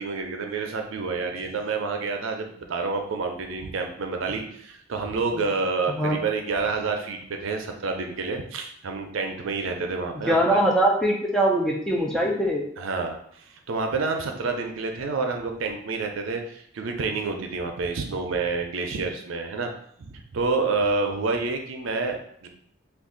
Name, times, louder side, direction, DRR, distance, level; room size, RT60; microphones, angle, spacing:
voice 1, 0.0-10.6 12.8-19.7 20.0-22.5, right 4 dB, 80° right, 4 dB, 0.5 m, -28 dB
voice 2, 10.3-12.6, right 1 dB, 5° left, -2 dB, 0.4 m, -22 dB
2.5 x 2.3 x 3.7 m, 0.65 s
head